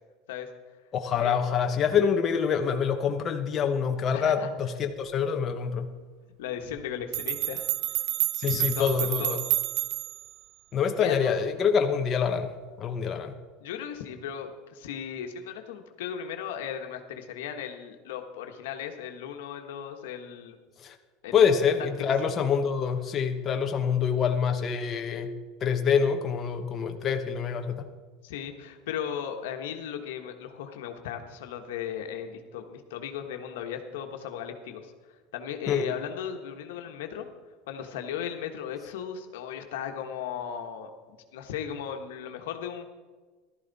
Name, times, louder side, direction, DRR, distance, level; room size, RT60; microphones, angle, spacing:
voice 1, 0.9-5.9 8.3-9.4 10.7-12.5 12.8-13.4 20.8-21.0 21.3-25.3 25.6-27.9 35.7-35.9, left 7 dB, 30° left, 4 dB, 1.0 m, -26 dB
voice 2, 4.1-4.5 6.4-7.7 8.5-9.4 11.0-11.4 13.6-20.6 21.2-21.4 28.2-34.9 35.3-37.3 37.7-42.9, left 8 dB, 85° left, 5 dB, 1.4 m, -36 dB
sound 1, 6.8-6.9 7.1-10.3, right 16 dB, 55° right, 0.4 m, -29 dB
14.5 x 12.5 x 4.1 m, 1.4 s
supercardioid pair, 130°, 0 cm